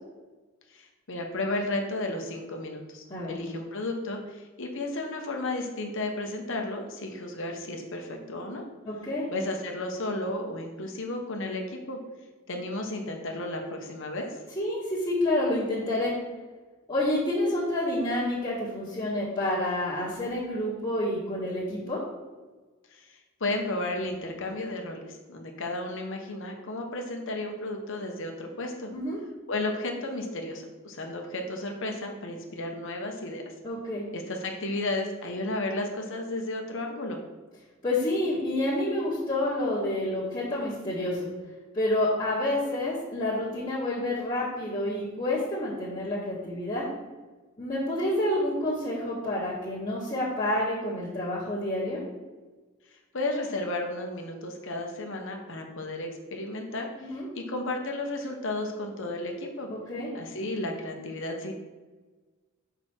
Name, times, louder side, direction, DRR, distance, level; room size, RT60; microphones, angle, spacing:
voice 1, 0.7-8.6 9.3-12.0 12.5-14.3 22.9-23.1 23.4-28.9 29.5-33.4 34.1-37.2 53.1-59.7 60.1-61.5, left 2 dB, 65° left, 3 dB, 1.2 m, -33 dB
voice 2, 8.9-9.2 14.6-16.1 16.9-22.0 28.9-29.2 33.6-34.0 37.8-41.3 41.7-46.9 47.6-52.0 57.0-57.3 59.7-60.1, left 1 dB, 20° left, -11 dB, 1.8 m, -28 dB
6.5 x 5.2 x 4.5 m, 1.3 s
head